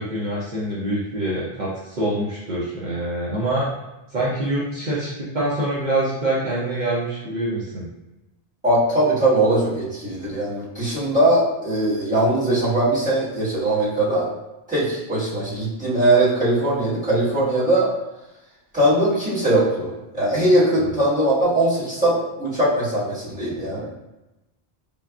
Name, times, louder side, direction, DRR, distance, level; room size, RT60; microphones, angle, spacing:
voice 1, 0.0-3.7 4.1-7.9 20.7-20.9, right 1 dB, 50° right, -8 dB, 0.8 m, -25 dB
voice 2, 8.6-14.3 14.7-17.9 18.7-23.9, right 1 dB, 10° right, -11 dB, 1.4 m, -20 dB
5.2 x 2.4 x 2.3 m, 0.98 s
omnidirectional pair, 1.0 m